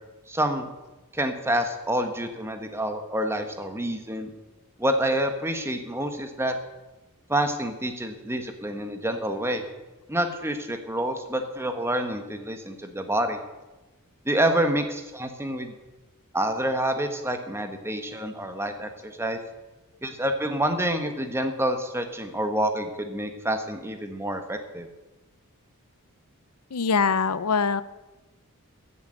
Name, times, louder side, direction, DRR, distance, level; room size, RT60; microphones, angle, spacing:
voice 1, 0.3-0.7 1.1-4.3 4.8-6.5 7.3-9.6 10.1-13.4 14.2-15.7 16.3-19.4 20.0-24.9, right 1 dB, 10° right, 6 dB, 1.5 m, -27 dB
voice 2, 26.7-27.8, left 5 dB, 85° left, 16 dB, 0.7 m, -23 dB
15.0 x 8.5 x 9.1 m, 1.1 s
head